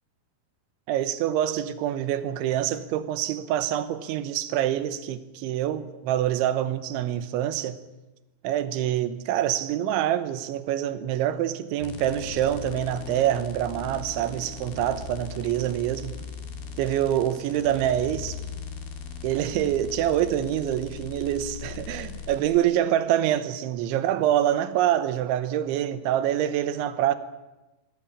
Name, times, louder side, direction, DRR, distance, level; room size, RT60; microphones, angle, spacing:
voice 1, 0.9-7.8 8.4-16.2 16.8-18.4 19.2-27.2, right 11 dB, 90° right, 3.4 m, -26 dB
sound 1, 11.8-22.4, left 6 dB, 85° left, 5.1 m, -39 dB
21.5 x 17.0 x 10.0 m
omnidirectional pair, 5.3 m